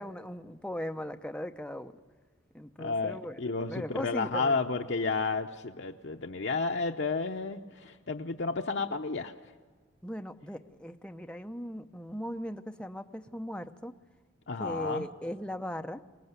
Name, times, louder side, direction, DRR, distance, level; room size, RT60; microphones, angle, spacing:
voice 1, 0.0-2.0 2.5-4.6 10.0-13.9 14.6-16.0, equal, 5° left, 6 dB, 0.7 m, -38 dB
voice 2, 2.8-9.3 14.5-15.1, left 4 dB, 65° left, 3 dB, 0.7 m, -31 dB
25.0 x 18.5 x 8.1 m, 1.6 s
head